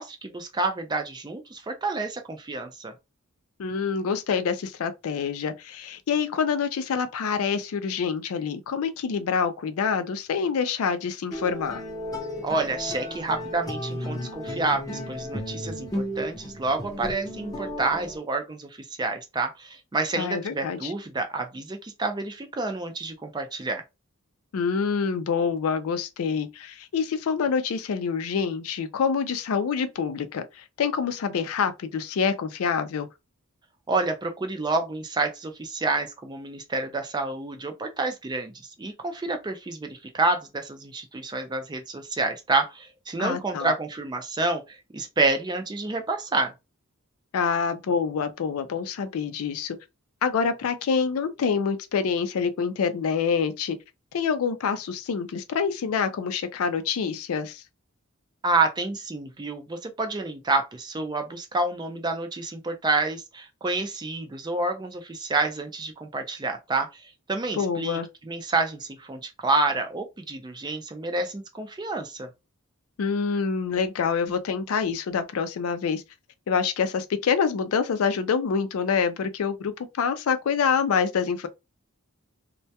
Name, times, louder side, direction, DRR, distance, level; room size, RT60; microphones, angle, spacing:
voice 1, 0.0-2.9 12.4-18.7 19.0-23.8 33.9-38.5 38.8-46.5 58.4-67.0 67.3-68.0 68.3-72.3, right 3 dB, 20° right, 0.4 m, -28 dB
voice 2, 3.6-11.8 20.2-20.9 24.5-33.1 43.2-43.7 47.3-49.8 50.2-53.8 54.1-57.6 67.6-68.1 73.0-76.0 76.5-81.5, left 6 dB, 75° left, 0.4 m, -26 dB
sound 1, 11.3-18.2, left 1 dB, 15° left, 0.6 m, -34 dB
2.2 x 2.1 x 2.7 m
head